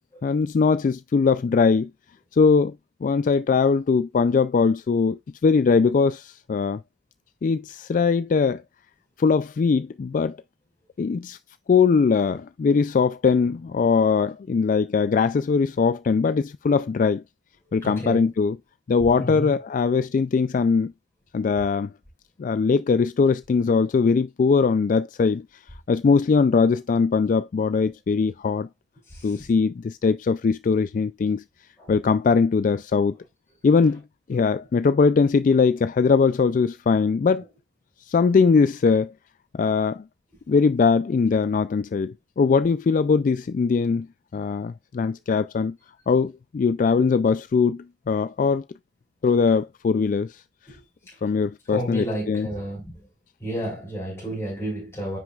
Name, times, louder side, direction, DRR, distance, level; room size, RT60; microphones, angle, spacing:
voice 1, 0.2-1.9 2.3-2.8 3.0-6.8 7.4-8.6 9.2-10.4 11.0-11.4 11.7-17.2 17.7-18.6 18.9-20.9 21.3-21.9 22.4-25.5 25.9-28.7 29.2-31.4 31.9-33.2 33.6-34.0 34.3-37.4 38.0-39.1 39.5-40.0 40.5-44.1 44.3-45.8 46.1-48.6 49.2-50.4 51.2-52.5, left 5 dB, 45° left, 0.3 m, -21 dB
voice 2, 17.8-18.2 19.2-19.6 29.1-29.5 31.8-31.9 50.7-50.8 51.1-51.2 51.7-53.1 53.4-55.2, right 1 dB, 15° left, 4.6 m, -32 dB
9.8 x 6.2 x 2.4 m
head